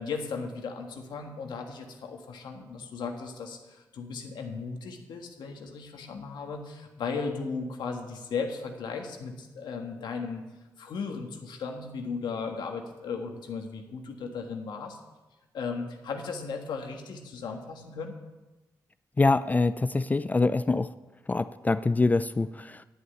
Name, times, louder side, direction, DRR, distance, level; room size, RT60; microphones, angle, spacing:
voice 1, 0.0-10.4 10.8-15.0 15.5-18.1, left 5 dB, 85° left, 3 dB, 1.6 m, -36 dB
voice 2, 19.2-20.9 21.3-22.8, left 3 dB, 20° left, 13 dB, 0.4 m, -25 dB
10.5 x 7.0 x 9.1 m, 1.1 s
cardioid pair, 95°, 7 cm